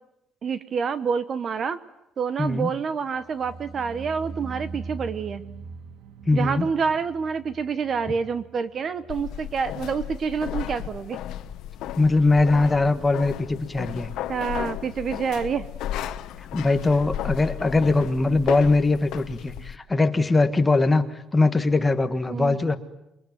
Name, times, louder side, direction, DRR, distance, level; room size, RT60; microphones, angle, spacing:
voice 1, 0.4-1.8 2.2-5.4 6.3-11.2 14.3-15.7 22.3-22.6, right 6 dB, 35° right, 14 dB, 1.0 m, -27 dB
voice 2, 2.4-2.7 6.3-6.7 12.0-14.1 16.5-21.1 21.3-22.8, left 3 dB, 15° left, 8 dB, 1.4 m, -21 dB
sound 1, 3.1-10.3 10.5-11.0 11.3-11.4, right 4 dB, 75° right, 2.0 m, -41 dB
sound 2, 9.1-19.8, left 11 dB, 75° left, 1.2 m, -34 dB
27.5 x 22.5 x 9.4 m, 0.86 s
cardioid pair, 165°, 0 cm